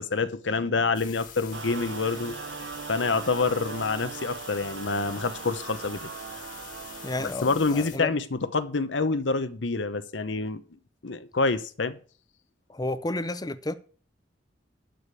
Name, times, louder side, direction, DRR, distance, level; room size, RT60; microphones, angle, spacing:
voice 1, 0.0-2.4 2.9-6.1 7.2-10.6 11.0-12.0, left 3 dB, 90° left, 0.9 m, -27 dB
sound 1, 0.9-8.0, left 8 dB, 50° left, 1.7 m, -45 dB
sound 2, 1.5-7.4, right 6 dB, 85° right, 0.6 m, -39 dB
voice 2, 7.0-8.1 12.7-13.7, left 2 dB, 20° left, 0.6 m, -31 dB
12.0 x 5.1 x 8.3 m
head